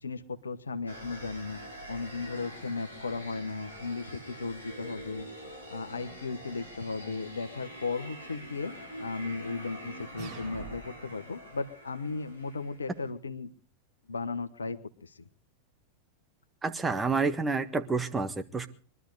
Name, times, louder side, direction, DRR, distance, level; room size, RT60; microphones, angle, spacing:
voice 1, 0.0-1.6 1.9-5.3 5.7-8.7 9.0-13.5 14.1-15.1, left 4 dB, 75° left, 11 dB, 1.2 m, -36 dB
sound 1, 0.9-13.1, equal, 90° right, 4.2 m, -45 dB
sound 2, 10.2-11.2, right 6 dB, 50° right, 7.5 m, -44 dB
voice 2, 16.6-18.7, right 4 dB, 15° right, 7 dB, 1.5 m, -29 dB
23.0 x 12.5 x 4.9 m, 0.42 s
figure-of-eight pair, 90°, 0 cm